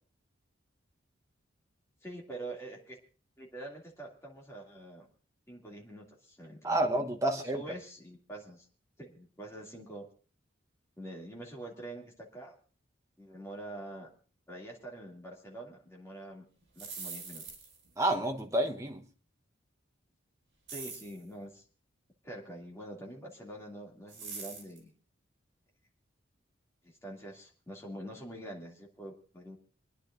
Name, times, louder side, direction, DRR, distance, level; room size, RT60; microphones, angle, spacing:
voice 1, 2.0-3.0 3.4-5.1 5.5-6.8 7.4-8.7 9.0-10.0 11.0-12.5 13.2-14.1 14.5-16.4 16.7-17.4 20.7-21.7 22.2-24.9 26.8-29.6, right 1 dB, 15° left, 2.5 m, -45 dB
voice 2, 6.6-7.6 18.0-19.0, right 1 dB, 15° right, 1.0 m, -29 dB
sound 1, 16.6-17.9 20.7-21.2 24.1-24.8, right 4 dB, 65° right, 4.9 m, -43 dB
29.0 x 10.0 x 2.6 m
head